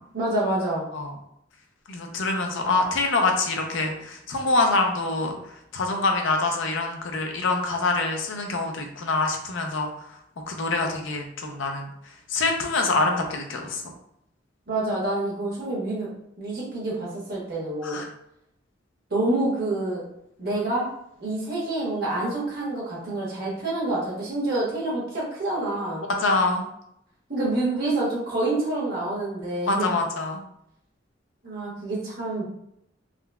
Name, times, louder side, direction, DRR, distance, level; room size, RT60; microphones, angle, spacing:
voice 1, 0.1-0.8 14.7-16.1 16.4-18.0 19.1-20.0 20.4-20.8 21.2-26.0 27.3-29.9 31.4-32.4, right 2 dB, 55° right, -5 dB, 1.2 m, -27 dB
voice 2, 1.9-5.3 5.7-9.9 10.5-11.9 12.3-13.8 17.8-18.1 26.1-26.6 29.7-30.4, left 3 dB, 75° left, 3 dB, 0.5 m, -25 dB
3.7 x 2.1 x 2.2 m, 0.76 s
head